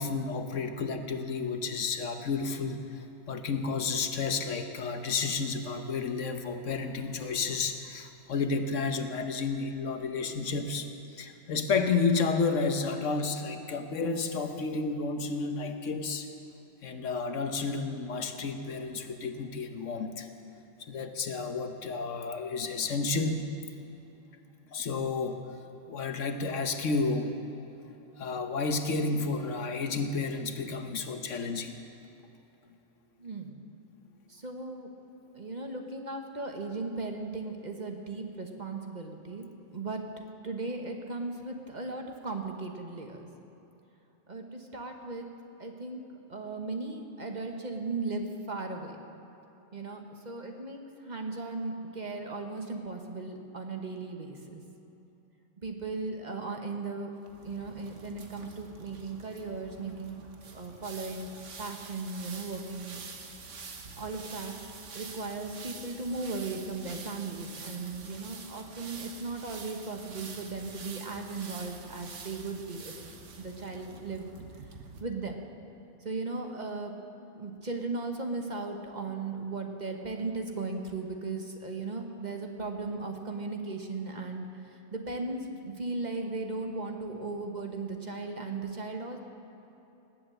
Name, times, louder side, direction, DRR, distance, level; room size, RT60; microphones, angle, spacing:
voice 1, 0.0-16.3 16.8-20.3 20.9-23.4 24.7-25.4 25.9-27.3 28.2-31.8, left 4 dB, 90° left, 6 dB, 1.4 m, -31 dB
voice 2, 33.2-33.6 34.3-34.9 35.3-43.2 44.3-45.3 45.6-46.0 46.3-49.0 49.7-54.6 55.6-57.1 57.4-63.0 64.0-64.5 64.9-72.9 73.4-74.3 75.0-75.4 76.0-76.9 77.3-89.2, right 3 dB, 40° right, 3 dB, 1.3 m, -37 dB
sound 1, 57.2-75.0, right 4 dB, 80° right, 1.5 m, -47 dB
19.0 x 8.1 x 7.8 m, 3.0 s
omnidirectional pair, 1.2 m